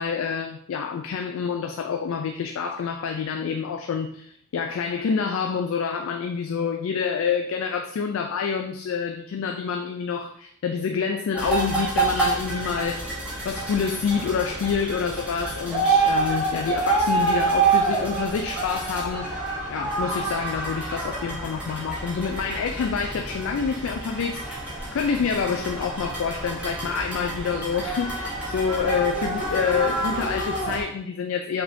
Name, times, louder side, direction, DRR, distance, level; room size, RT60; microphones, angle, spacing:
voice 1, 0.0-13.2 13.4-24.7 24.9-31.6, left 6 dB, 65° left, 5 dB, 0.3 m, -27 dB
sound 1, 11.3-30.8, right 3 dB, 5° right, 1.0 m, -27 dB
4.8 x 3.5 x 2.7 m, 0.67 s
head